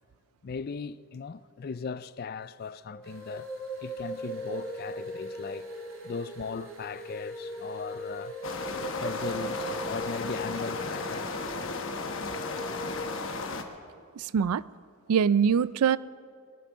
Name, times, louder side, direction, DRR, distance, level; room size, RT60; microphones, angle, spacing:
voice 1, 0.4-3.5 3.8-5.7 6.0-8.4 9.0-11.5, left 5 dB, 45° left, 0.4 m, -38 dB
sound 1, 2.9-13.1, right 1 dB, 25° left, 1.7 m, -39 dB
sound 2, 3.0-11.4, right 3 dB, 65° right, 2.7 m, -56 dB
sound 3, 8.4-13.6, left 3 dB, 60° left, 1.1 m, -35 dB
voice 2, 14.2-14.6 15.1-16.0, right 7 dB, 90° right, 0.4 m, -23 dB
21.0 x 9.1 x 6.2 m
head